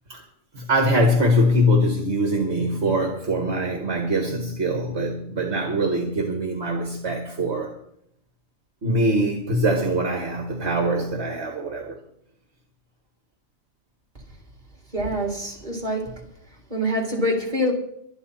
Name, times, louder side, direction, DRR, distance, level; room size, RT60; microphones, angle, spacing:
voice 1, 0.5-7.7 8.8-12.0, equal, 55° right, 2 dB, 2.1 m, -23 dB
voice 2, 14.9-16.1 16.7-17.7, equal, 35° right, 0 dB, 4.0 m, -25 dB
24.0 x 9.8 x 4.3 m, 0.74 s
omnidirectional pair, 1.4 m